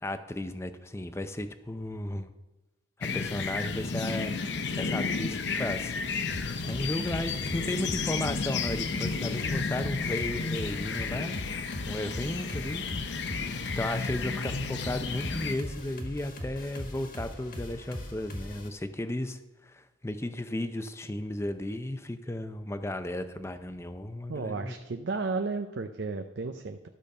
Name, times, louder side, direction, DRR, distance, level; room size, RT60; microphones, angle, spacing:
voice 1, 0.0-2.3 3.0-4.4 4.8-5.9 6.6-11.3 11.9-12.8 13.8-24.8, left 1 dB, 15° left, 10 dB, 0.6 m, -34 dB
sound 1, 3.0-15.6, left 4 dB, 75° left, 0.7 m, -32 dB
sound 2, 6.3-18.7, left 1 dB, 55° left, 1.5 m, -41 dB
voice 2, 24.3-26.9, right 4 dB, 80° right, 7 dB, 0.5 m, -33 dB
12.5 x 5.1 x 6.6 m, 1.1 s
head